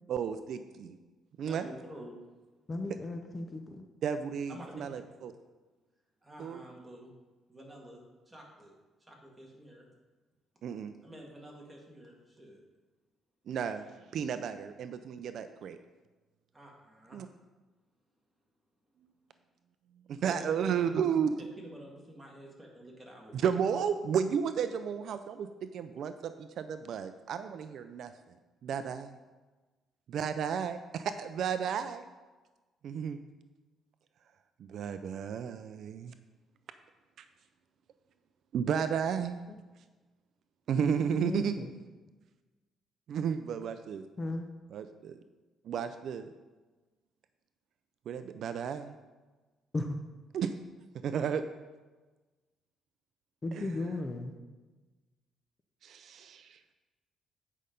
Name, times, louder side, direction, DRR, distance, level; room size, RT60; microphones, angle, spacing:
voice 1, 0.1-1.0 1.4-1.7 4.0-5.3 6.4-6.6 10.6-10.9 13.5-13.9 14.1-15.8 17.1-17.3 20.1-21.4 23.3-25.5 25.7-28.1 28.6-29.1 30.1-32.0 32.8-33.2 34.6-36.1 38.5-39.4 40.7-41.5 43.1-44.0 44.7-45.2 45.7-46.3 48.1-49.0 50.3-50.5 51.0-51.4 53.5-53.6 55.8-56.6, right 7 dB, 60° right, 10 dB, 0.4 m, -33 dB
voice 2, 1.4-2.1 4.5-5.3 6.2-7.1 7.5-8.7 9.1-9.9 11.0-12.6 16.5-17.2 20.2-20.9 21.4-23.4, equal, 10° right, -2 dB, 1.8 m, -49 dB
voice 3, 2.7-3.8 41.2-41.7 44.2-44.5 49.7-50.0 53.4-54.4, left 2 dB, 25° left, 5 dB, 0.6 m, -35 dB
8.5 x 5.5 x 5.2 m, 1.2 s
cardioid pair, 140°, 0 cm